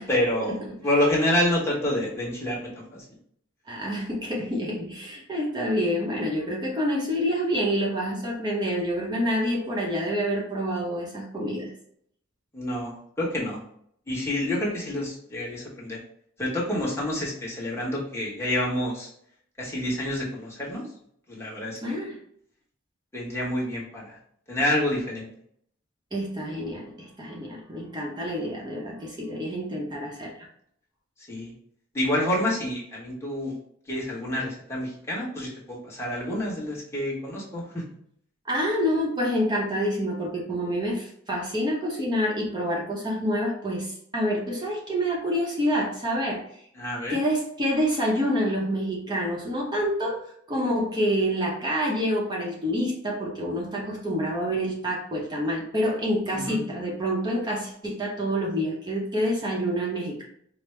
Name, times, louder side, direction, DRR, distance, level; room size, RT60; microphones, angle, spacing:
voice 1, 0.0-3.0 12.5-13.6 14.1-16.0 16.4-19.1 19.6-20.9 21.3-22.0 23.1-24.2 24.5-25.3 31.3-31.5 31.9-33.5 33.9-37.8 46.8-47.2 56.3-56.6, left 1 dB, 15° left, -6 dB, 1.1 m, -28 dB
voice 2, 3.7-11.7 21.8-22.2 26.1-30.3 38.5-46.4 47.1-60.2, equal, 20° right, -2 dB, 0.7 m, -27 dB
5.1 x 2.1 x 3.2 m, 0.67 s
head